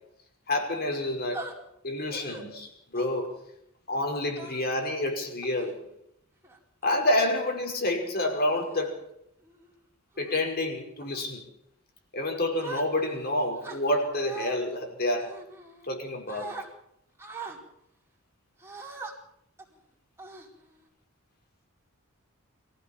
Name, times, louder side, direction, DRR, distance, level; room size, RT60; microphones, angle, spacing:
voice 1, 0.5-1.4 1.8-3.3 3.9-5.8 6.8-9.0 10.2-11.4 12.1-15.3 15.9-16.5, left 1 dB, 45° left, 2 dB, 5.4 m, -28 dB
sound 1, 1.3-1.5 2.1-2.4 2.9-3.3 4.3-4.8 5.4-5.7 6.4-7.0 7.8-8.0 8.6-8.9 9.4-9.7 10.1-10.5 11.0-11.3 12.6-13.2 13.6-14.6 15.2-16.0 16.3-16.7 17.2-17.6 18.6-19.1 19.6-19.7 20.2-20.9, right 3 dB, 10° right, 4.8 m, -42 dB
24.0 x 15.5 x 7.3 m, 0.76 s
head